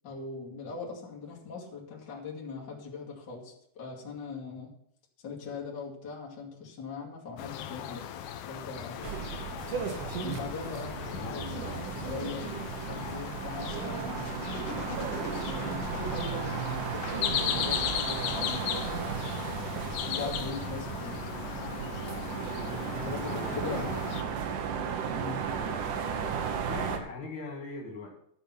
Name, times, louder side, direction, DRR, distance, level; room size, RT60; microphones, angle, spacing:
voice 1, 0.0-4.7 5.2-8.1 8.5-9.1 10.2-12.5 12.8-14.5 15.4-18.9 20.0-21.2 23.0-24.0 25.1-25.4, left 4 dB, 35° left, -4 dB, 2.7 m, -40 dB
sound 1, 7.4-24.2, left 10 dB, 80° left, 2.4 m, -37 dB
sound 2, 9.0-27.0, right 7 dB, 75° right, 2.6 m, -35 dB
voice 2, 11.0-11.5 22.6-24.0 24.4-24.6 25.4-25.8 26.1-26.3 26.7-28.1, left 2 dB, 60° left, -2 dB, 3.1 m, -41 dB
13.0 x 7.0 x 5.8 m, 0.71 s
omnidirectional pair, 3.8 m